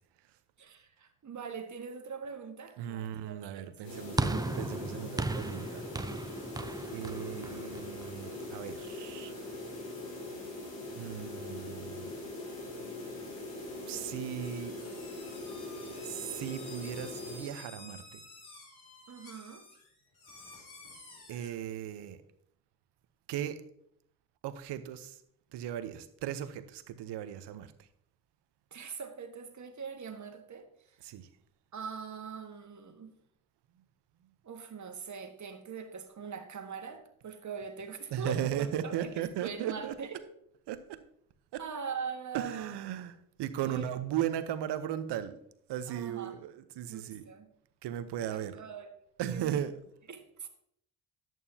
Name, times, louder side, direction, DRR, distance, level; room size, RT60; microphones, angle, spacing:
voice 1, 0.6-4.3 19.1-19.7 28.7-31.0 31.7-33.1 34.4-40.2 41.6-42.7 43.5-43.9 45.9-46.4 46.9-47.5 48.3-48.9 49.3-49.6 50.1-50.5, right 6 dB, 40° right, 1.5 m, -42 dB
voice 2, 2.8-5.8 6.9-9.3 10.9-12.1 13.9-14.7 16.0-18.2 21.3-22.2 23.3-23.6 24.4-25.2 25.5-27.7 31.0-31.3 38.1-39.9 40.7-41.0 41.5-41.6 42.3-45.4 45.7-47.2 47.8-48.6 49.2-49.7, right 10 dB, 70° right, 0.9 m, -37 dB
sound 1, 3.8-17.5, left 2 dB, 90° left, 2.8 m, -42 dB
sound 2, 4.2-8.6, right 2 dB, 10° right, 0.5 m, -36 dB
sound 3, 14.4-21.5, left 2 dB, 60° left, 4.3 m, -52 dB
10.5 x 9.1 x 2.8 m
supercardioid pair, 55°, 42 cm